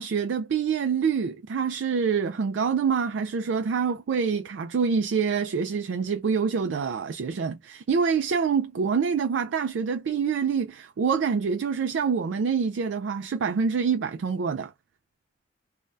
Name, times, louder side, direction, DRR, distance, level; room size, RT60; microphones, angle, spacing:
voice 1, 0.0-14.7, right 6 dB, 75° right, 0.4 m, -26 dB
3.3 x 2.2 x 2.5 m
head